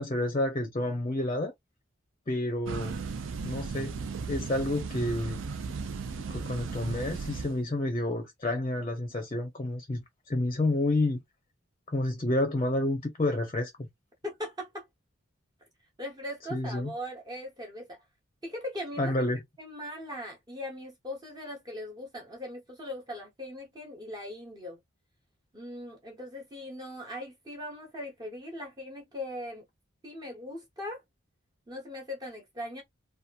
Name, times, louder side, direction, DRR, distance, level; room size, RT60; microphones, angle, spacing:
voice 1, 0.0-1.5 2.3-2.9 3.4-3.9 4.3-5.4 6.3-10.0 10.3-11.2 11.9-13.9 16.5-16.9 19.0-19.4, left 1 dB, 30° left, 0.6 m, -29 dB
sound 1, 2.7-7.6, right 5 dB, 65° right, 0.4 m, -36 dB
voice 2, 14.2-14.9 16.0-18.0 18.4-19.2 19.6-24.8 25.5-29.6 30.0-31.0 31.7-32.8, left 1 dB, 20° right, 0.7 m, -40 dB
2.8 x 2.3 x 2.3 m
head